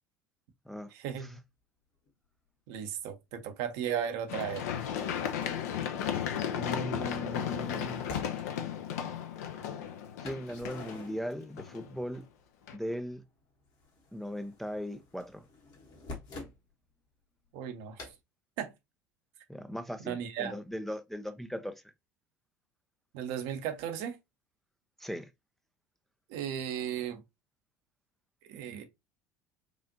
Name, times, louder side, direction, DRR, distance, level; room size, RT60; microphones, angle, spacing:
voice 1, 0.9-1.4 2.7-4.7 17.5-18.0 18.6-18.7 20.1-20.6 23.1-24.2 26.3-27.2 28.5-28.8, right 9 dB, 60° right, 0.8 m, -35 dB
sound 1, 2.1-2.2 4.4-5.7 7.2-8.5 10.2-11.9 12.2-13.0 13.3-16.6 18.0-18.2, left 2 dB, 50° left, 1.3 m, -47 dB
Run, 4.3-12.2 12.7-12.8, left 9 dB, 65° left, 0.6 m, -35 dB
voice 2, 6.5-8.1 10.2-12.3 12.7-13.2 14.1-15.4 19.5-21.8 25.0-25.3, equal, ahead, 0.4 m, -38 dB
4.8 x 2.5 x 2.6 m
figure-of-eight pair, 60°, 9 cm